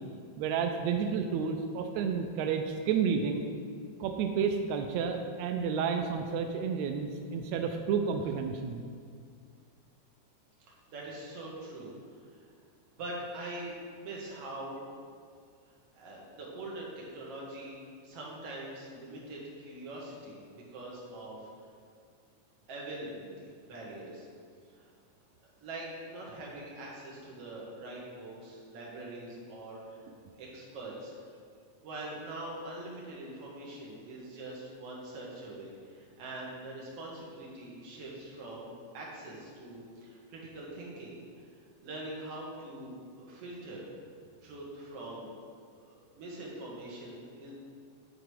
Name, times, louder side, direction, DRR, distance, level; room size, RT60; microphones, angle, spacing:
voice 1, 0.4-3.4 4.0-8.8, right 6 dB, 85° right, 5 dB, 1.5 m, -31 dB
voice 2, 10.7-11.9 12.3-12.5 12.9-14.8 15.9-17.7 18.0-21.5 22.7-24.3 24.7-24.9 25.4-30.0 30.4-31.4 31.8-41.4 41.8-43.9 44.4-45.3 45.8-47.5, right 1 dB, 55° right, -4 dB, 2.2 m, -43 dB
9.9 x 3.9 x 4.8 m, 2.1 s
omnidirectional pair, 3.5 m